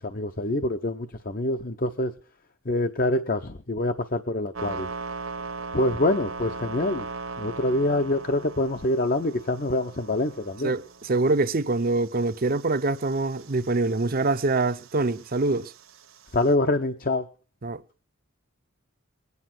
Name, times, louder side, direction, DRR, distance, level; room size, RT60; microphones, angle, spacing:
voice 1, 0.0-2.1 2.6-4.9 5.7-7.0 7.4-10.8 16.3-17.3, left 1 dB, 40° left, 0.9 m, -25 dB
sound 1, 4.5-16.5, right 3 dB, 70° right, 1.3 m, -40 dB
voice 2, 10.6-15.7 17.6-17.8, right 3 dB, 45° right, 0.7 m, -25 dB
21.0 x 9.6 x 6.1 m
head